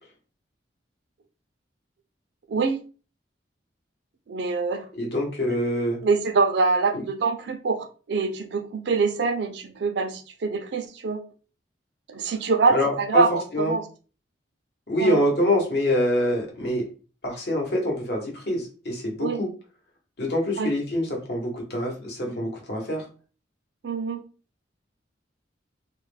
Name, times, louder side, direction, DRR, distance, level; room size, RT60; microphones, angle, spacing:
voice 1, 2.5-2.8 4.3-4.9 6.0-11.2 12.1-13.8 15.0-15.2 19.2-19.4 20.6-20.7 23.8-24.2, right 4 dB, 65° right, 0.4 m, -24 dB
voice 2, 5.0-6.0 12.7-13.2 13.5-13.8 14.9-16.9 17.2-19.5 20.2-23.1, left 1 dB, 60° left, 0.9 m, -25 dB
2.3 x 2.1 x 3.2 m
head